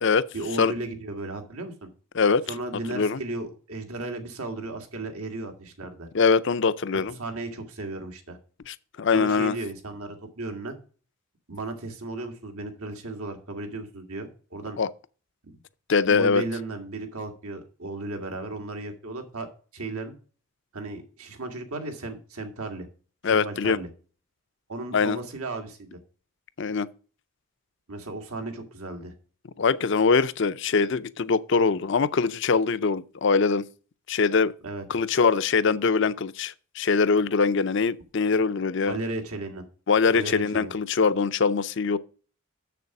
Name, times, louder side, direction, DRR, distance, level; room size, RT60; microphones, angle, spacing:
voice 1, 0.3-1.9 2.5-6.1 7.2-8.4 9.1-10.7 11.5-14.8 15.4-15.6 16.0-19.5 19.7-20.1 20.7-22.9 23.3-23.9 24.7-26.0 27.9-29.1 34.6-34.8 38.8-39.6 40.1-40.7, right 2 dB, 90° right, 1.9 m, -35 dB
voice 2, 6.1-7.1 8.7-9.5 14.8-14.9 15.9-16.4 23.2-23.8 24.9-25.2 26.6-26.9 29.6-33.7 34.1-34.5 34.9-39.0 39.9-42.0, left 5 dB, 55° left, 0.5 m, -23 dB
7.1 x 6.8 x 5.9 m
head